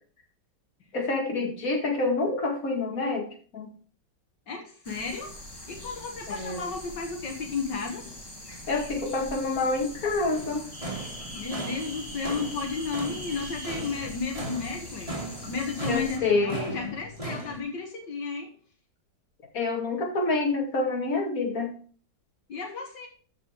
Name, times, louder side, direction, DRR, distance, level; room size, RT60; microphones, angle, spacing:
voice 1, 0.9-3.7 6.3-6.6 8.7-10.7 15.9-16.9 19.5-21.8, left 3 dB, 55° left, 1 dB, 2.5 m, -27 dB
voice 2, 4.5-5.3 5.7-8.1 11.3-15.2 15.5-18.5 22.5-23.1, left 4 dB, 80° left, 2 dB, 2.2 m, -33 dB
sound 1, 4.8-16.2, left 1 dB, 15° left, 1.4 m, -43 dB
sound 2, 10.3-17.6, right 1 dB, 20° right, 2.3 m, -37 dB
13.5 x 5.3 x 4.6 m, 0.43 s
omnidirectional pair, 1.9 m